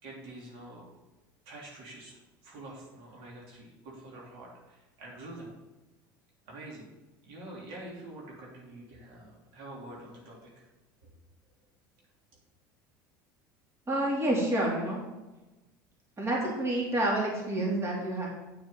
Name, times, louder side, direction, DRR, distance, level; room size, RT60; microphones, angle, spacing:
voice 1, 0.0-0.8 1.4-5.5 6.4-6.9 7.2-10.7 11.0-11.1, right 1 dB, 60° right, -3 dB, 3.3 m, -46 dB
voice 2, 13.9-15.0 16.2-18.3, right 1 dB, 25° right, -3 dB, 3.1 m, -28 dB
8.4 x 8.1 x 3.9 m, 1.1 s
hypercardioid pair, 85°, 11 cm